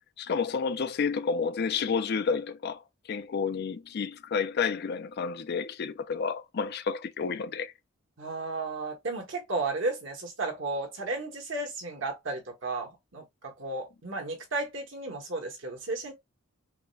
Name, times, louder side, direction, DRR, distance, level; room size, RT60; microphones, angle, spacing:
voice 1, 0.2-2.8 3.1-7.7, left 5 dB, 50° left, 0.4 m, -30 dB
voice 2, 8.2-16.1, right 3 dB, 60° right, 1.2 m, -34 dB
4.7 x 2.1 x 2.3 m
head